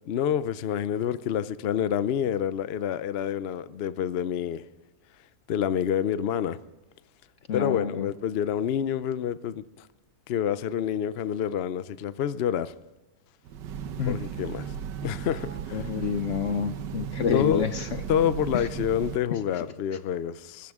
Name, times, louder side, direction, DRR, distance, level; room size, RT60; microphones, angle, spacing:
voice 1, 0.1-4.7 5.5-6.6 7.5-9.9 10.3-12.7 14.1-14.7 15.0-15.9 17.3-17.7 18.1-20.7, left 9 dB, 75° left, 0.5 m, -28 dB
voice 2, 7.5-8.1 14.0-14.2 15.7-17.9 18.5-18.7 19.3-19.4, left 7 dB, 55° left, 0.9 m, -28 dB
Train, 13.5-19.2, right 8 dB, 85° right, 1.5 m, -36 dB
22.0 x 13.5 x 3.6 m
omnidirectional pair, 1.8 m